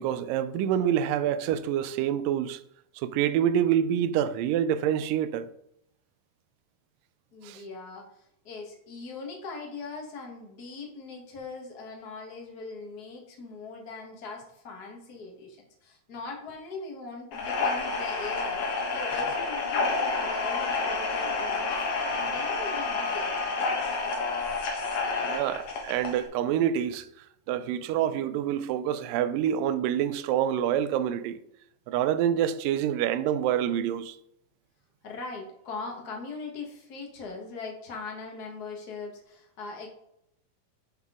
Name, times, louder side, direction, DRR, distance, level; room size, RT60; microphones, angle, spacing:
voice 1, 0.0-2.6 3.0-5.5 7.4-7.6 25.2-27.1 27.5-31.4 31.9-34.2, right 10 dB, 80° right, 2.1 m, -27 dB
voice 2, 7.3-21.8 22.1-24.0 35.0-39.9, left 4 dB, 80° left, 0.8 m, -41 dB
sound 1, 17.3-26.3, left 3 dB, 60° left, 2.0 m, -29 dB
11.0 x 4.0 x 3.6 m
omnidirectional pair, 4.1 m